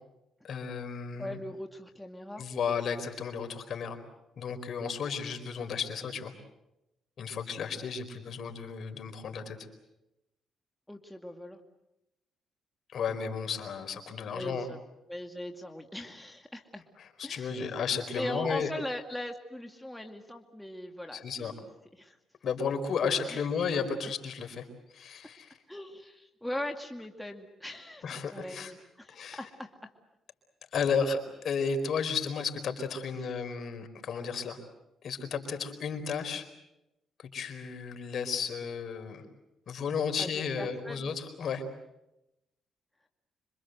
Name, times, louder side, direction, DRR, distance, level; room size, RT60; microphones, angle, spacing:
voice 1, 0.4-1.4 2.4-4.0 4.4-6.3 7.2-9.6 12.9-14.7 17.2-18.7 21.1-21.5 22.4-24.7 24.9-25.5 28.0-28.7 29.1-29.4 30.7-34.6 35.0-36.5 37.2-39.2 39.7-41.6, left 6 dB, 60° left, 6 dB, 4.5 m, -33 dB
voice 2, 1.2-2.4 10.9-11.6 14.3-14.8 15.1-16.8 17.2-17.8 18.2-21.6 21.9-22.2 22.9-23.0 23.3-23.4 25.7-29.9 40.2-41.1, left 1 dB, 5° left, 3 dB, 2.3 m, -40 dB
27.0 x 25.0 x 8.0 m, 0.90 s
cardioid pair, 90°, 0 cm